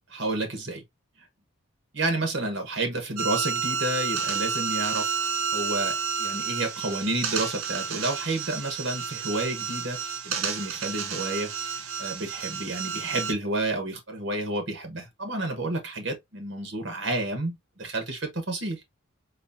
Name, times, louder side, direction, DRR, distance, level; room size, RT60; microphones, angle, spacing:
voice 1, 0.1-0.8 1.9-5.1 5.5-18.8, right 2 dB, 60° right, 1.3 m, -30 dB
sound 1, 3.2-13.3, right 6 dB, 80° right, 0.8 m, -30 dB
4.3 x 2.9 x 2.6 m
head